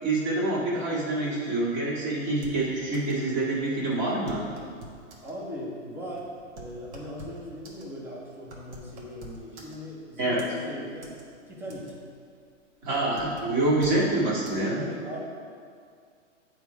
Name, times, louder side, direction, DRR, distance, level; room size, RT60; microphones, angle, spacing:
voice 1, 0.0-4.5 10.2-10.4 12.8-14.9, right 2 dB, 35° right, -5 dB, 1.8 m, -26 dB
sound 1, 2.4-3.3 3.5-3.6 3.9-5.4 5.9-10.0 10.4-11.2 11.5-12.1 12.5-14.1 14.5-14.6, right 2 dB, 65° right, 1.5 m, -46 dB
voice 2, 5.2-11.2 11.5-12.0 14.6-15.2, equal, 5° right, -3 dB, 0.6 m, -39 dB
8.8 x 3.5 x 4.6 m, 2.2 s
hypercardioid pair, 145°, 37 cm